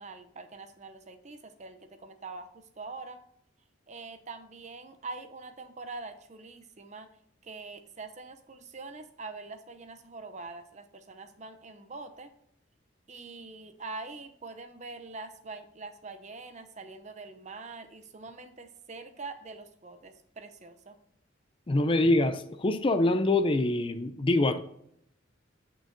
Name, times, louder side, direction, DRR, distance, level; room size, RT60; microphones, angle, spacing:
voice 1, 0.0-3.2 3.9-7.1 7.4-12.3 13.1-21.0, right 3 dB, 35° right, 0.7 m, -44 dB
voice 2, 21.7-24.6, left 2 dB, 25° left, 0.4 m, -25 dB
8.6 x 6.2 x 2.7 m
head